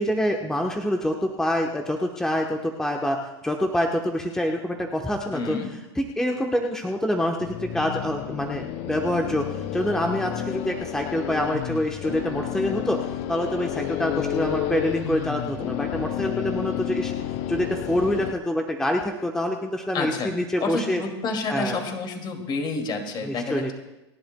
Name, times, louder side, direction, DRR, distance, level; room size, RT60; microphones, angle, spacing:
voice 1, 0.0-3.2 3.4-5.6 6.0-17.1 17.5-21.0 21.5-21.8 23.2-23.7, left 1 dB, 5° left, 2 dB, 1.0 m, -26 dB
voice 2, 5.3-5.7 19.9-20.3 20.6-23.7, left 3 dB, 30° left, 4 dB, 2.4 m, -29 dB
sound 1, 7.4-18.3, left 11 dB, 45° left, 0.7 m, -31 dB
29.5 x 10.5 x 2.2 m, 1.0 s
hypercardioid pair, 105°, 14 cm